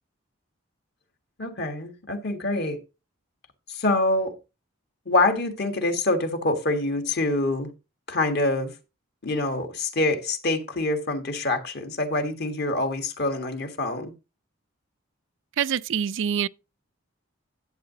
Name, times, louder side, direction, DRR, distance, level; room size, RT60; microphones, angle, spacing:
voice 1, 1.4-2.8 3.7-4.4 5.0-7.7 8.1-8.7 9.2-14.1, left 2 dB, 50° left, 1.6 m, -25 dB
voice 2, 15.6-16.5, right 8 dB, 60° right, 0.4 m, -25 dB
11.5 x 8.2 x 2.8 m
head